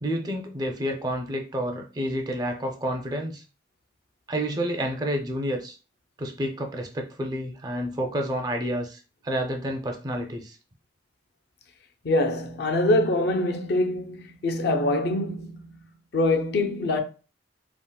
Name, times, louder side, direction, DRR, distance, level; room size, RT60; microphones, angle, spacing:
voice 1, 0.0-3.4 4.3-5.8 6.2-10.6, equal, 20° right, 0.4 m, -29 dB
voice 2, 12.0-15.9 16.1-17.0, left 2 dB, 60° left, 0.4 m, -24 dB
3.5 x 2.0 x 2.2 m
head